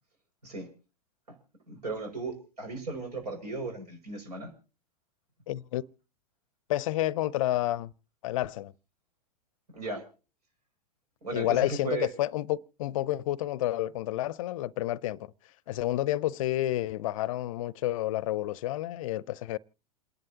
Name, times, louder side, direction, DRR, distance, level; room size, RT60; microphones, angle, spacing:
voice 1, 1.7-4.5 9.7-10.0 11.2-12.1, right 3 dB, 75° right, 6.3 m, -36 dB
voice 2, 5.5-5.8 6.7-7.9 8.2-8.7 11.3-15.3 15.7-19.6, left 14 dB, 55° left, 0.6 m, -30 dB
28.0 x 11.0 x 2.9 m
hypercardioid pair, 100°, 21 cm